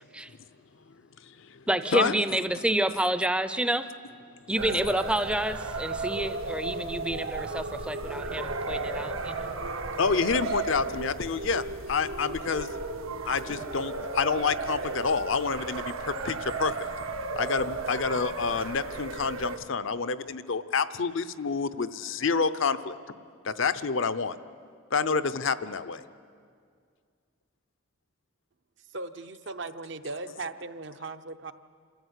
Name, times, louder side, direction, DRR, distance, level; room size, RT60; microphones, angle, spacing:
voice 1, 1.7-3.9 4.5-9.5, right 1 dB, 5° right, 11 dB, 0.5 m, -28 dB
sound 1, 4.6-19.6, right 3 dB, 80° right, 1.3 m, -34 dB
voice 2, 10.0-12.7 13.3-16.7 17.4-23.0 23.4-24.4 24.9-26.0, left 5 dB, 65° left, 13 dB, 0.7 m, -28 dB
voice 3, 28.9-31.5, right 3 dB, 55° right, 10 dB, 0.7 m, -38 dB
27.5 x 14.0 x 8.2 m, 2.2 s
head